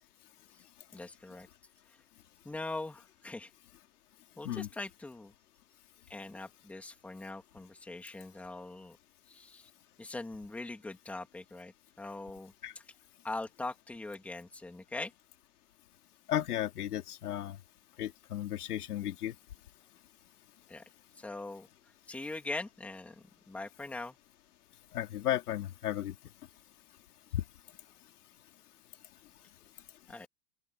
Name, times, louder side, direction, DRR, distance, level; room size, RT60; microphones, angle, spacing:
voice 1, 0.9-1.5 1.9-2.0 2.4-3.5 4.4-5.3 6.1-9.0 9.3-9.7 10.0-12.8 13.2-15.1 20.7-20.8 21.2-21.7 22.1-24.2 30.1-30.3, left 2 dB, 5° left, 2.2 m, -42 dB
voice 2, 16.3-17.6 18.0-19.3 24.9-26.1 27.3-27.4, left 12 dB, 80° left, 4.4 m, -34 dB
open air
supercardioid pair, 175°, 45 cm